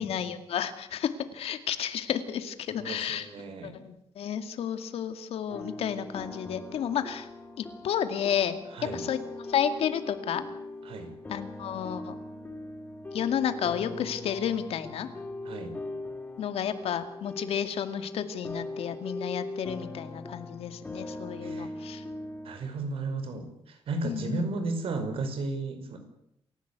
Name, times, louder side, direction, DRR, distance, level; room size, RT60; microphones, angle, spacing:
voice 1, 0.0-3.3 3.6-7.3 7.6-9.2 9.5-10.4 11.3-12.2 13.1-15.1 16.4-22.0 24.0-24.4, left 9 dB, 85° left, 9 dB, 2.2 m, -31 dB
voice 2, 2.8-3.7 8.7-9.0 10.8-11.1 15.4-15.7 21.4-21.7 22.4-26.0, right 3 dB, 70° right, 7 dB, 5.0 m, -34 dB
sound 1, 5.5-22.6, left 2 dB, 20° left, 2.4 m, -40 dB
28.0 x 16.0 x 8.3 m, 0.78 s
wide cardioid pair, 170°, 10 cm